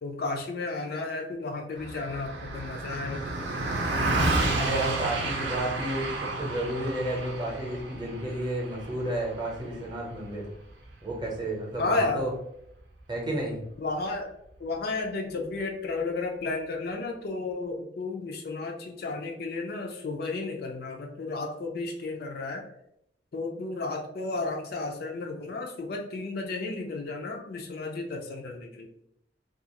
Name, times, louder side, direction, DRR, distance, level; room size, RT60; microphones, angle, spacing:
voice 1, 0.0-3.5 11.8-12.3 13.8-14.3 14.6-22.7 23.3-28.9, left 3 dB, 60° left, 3 dB, 0.4 m, -33 dB
Car passing by, 1.8-11.4, right 2 dB, 75° right, 0.5 m, -31 dB
voice 2, 4.5-10.5 11.0-12.3 13.1-13.6, right 1 dB, 25° right, -2 dB, 0.7 m, -31 dB
2.4 x 2.4 x 2.8 m, 0.76 s
head